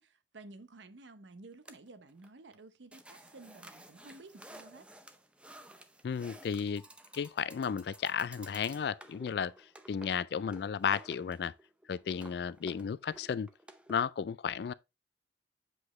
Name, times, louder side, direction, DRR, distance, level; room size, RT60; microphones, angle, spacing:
voice 1, 0.0-4.9, right 2 dB, 80° right, 0.8 m, -53 dB
sound 1, 1.6-2.3 2.5-2.6 2.9-13.9, right 1 dB, 5° right, 0.6 m, -54 dB
voice 2, 6.0-6.8 7.1-11.5 11.9-13.5 13.9-14.7, left 7 dB, 60° left, 0.3 m, -34 dB
7.9 x 5.0 x 3.1 m
head